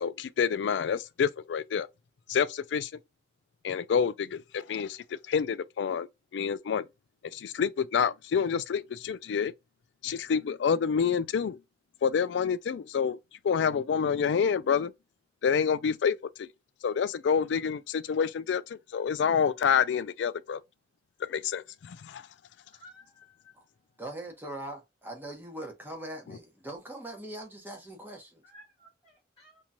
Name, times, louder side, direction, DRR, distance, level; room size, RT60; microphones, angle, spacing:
voice 1, 0.0-1.9 2.3-2.9 3.6-6.1 6.3-6.9 7.3-9.5 10.0-11.6 12.0-13.2 13.4-14.9 15.4-16.5 16.8-20.6 21.3-22.2, left 7 dB, 80° left, 0.3 m, -28 dB
voice 2, 22.7-23.5 28.4-29.6, equal, 30° left, 1.2 m, -55 dB
voice 3, 24.0-28.4, right 1 dB, 10° right, 0.9 m, -41 dB
3.0 x 2.7 x 2.2 m
head